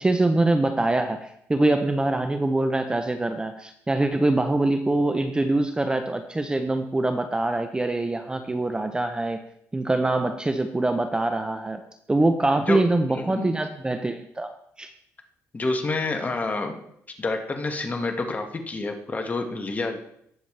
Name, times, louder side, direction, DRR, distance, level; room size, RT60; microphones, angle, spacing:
voice 1, 0.0-9.4 9.7-11.8 12.1-14.5 14.8-14.9, right 2 dB, 15° right, 7 dB, 0.7 m, -24 dB
voice 2, 13.1-13.5 15.5-16.8 17.2-20.0, left 3 dB, 25° left, 4 dB, 1.8 m, -28 dB
18.5 x 7.0 x 3.3 m, 0.71 s
cardioid pair, 100°, 6 cm